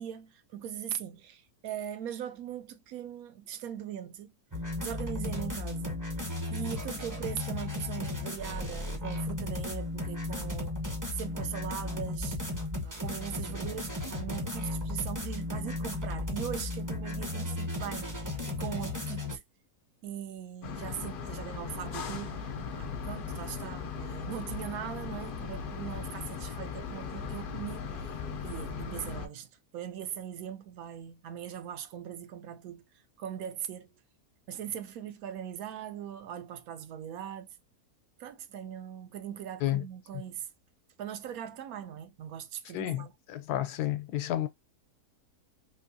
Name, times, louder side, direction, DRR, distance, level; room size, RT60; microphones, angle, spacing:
voice 1, 0.0-4.3 4.8-6.0 6.5-10.8 11.1-12.4 12.8-19.4 20.0-28.2 28.4-32.8 33.2-33.9 34.5-37.5 38.2-40.5 41.0-43.1, right 9 dB, 75° right, 1.0 m, -40 dB
sound 1, 4.5-19.4, left 2 dB, 20° right, 0.6 m, -35 dB
sound 2, 20.6-29.3, left 6 dB, 65° left, 0.5 m, -38 dB
voice 2, 42.7-44.5, left 13 dB, 85° left, 1.1 m, -31 dB
3.8 x 2.6 x 2.6 m
omnidirectional pair, 1.6 m